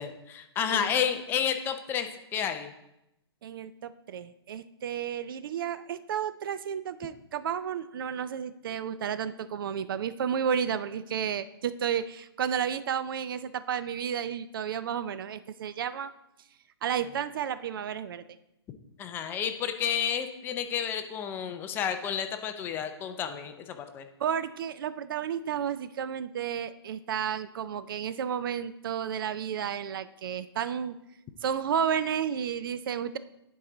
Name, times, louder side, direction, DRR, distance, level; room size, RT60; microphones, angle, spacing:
voice 1, 0.0-2.7 19.0-24.1, left 8 dB, 15° left, 7 dB, 0.4 m, -31 dB
voice 2, 3.4-16.1 16.8-18.2 24.2-30.9 31.4-33.2, right 8 dB, 55° right, 13 dB, 0.4 m, -32 dB
10.5 x 4.7 x 3.8 m, 0.85 s
hypercardioid pair, 145°, 14 cm